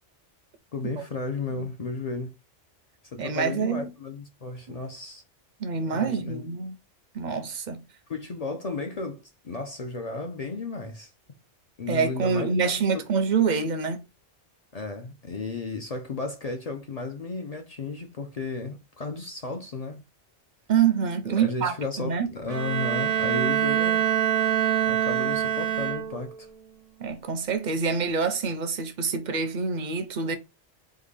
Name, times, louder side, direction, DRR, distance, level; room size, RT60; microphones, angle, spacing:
voice 1, 0.7-2.3 3.1-5.2 5.8-6.4 8.1-11.1 11.8-13.0 14.7-20.0 21.4-24.1 24.9-26.5, left 3 dB, 55° left, 0.4 m, -34 dB
voice 2, 3.2-3.9 4.7-4.8 5.6-6.7 7.1-7.8 11.9-14.0 20.7-22.3 27.0-30.4, right 6 dB, 55° right, 0.5 m, -26 dB
Bowed string instrument, 22.5-26.4, right 10 dB, 90° right, 1.0 m, -25 dB
3.7 x 2.2 x 3.2 m
omnidirectional pair, 1.2 m